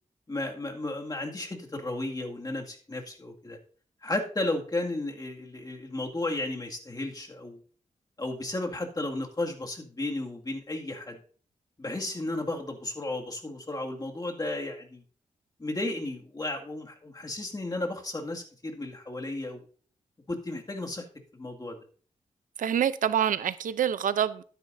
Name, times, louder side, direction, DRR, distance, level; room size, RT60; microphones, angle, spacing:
voice 1, 0.3-3.6 4.0-7.6 8.2-11.2 11.8-15.0 15.6-19.6 20.3-21.0 21.4-21.8, left 2 dB, 30° left, 2.1 m, -33 dB
voice 2, 22.6-24.4, right 9 dB, 80° right, 0.6 m, -26 dB
12.5 x 10.5 x 2.7 m
cardioid pair, 70°, 13 cm